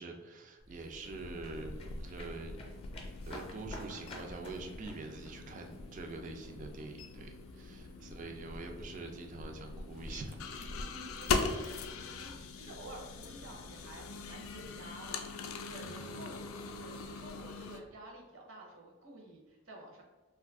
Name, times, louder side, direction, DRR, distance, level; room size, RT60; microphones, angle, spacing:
voice 1, 0.0-2.5 3.3-10.6 16.1-16.5, right 3 dB, 35° right, 4 dB, 0.3 m, -45 dB
sound 1, 0.6-15.7, left 1 dB, 25° left, 0.6 m, -53 dB
sound 2, 1.1-17.8, left 4 dB, 80° left, 0.3 m, -41 dB
voice 2, 7.5-8.1 10.6-16.5 16.8-20.0, right 1 dB, 65° right, 0 dB, 0.7 m, -51 dB
2.6 x 2.4 x 3.5 m, 1.2 s
head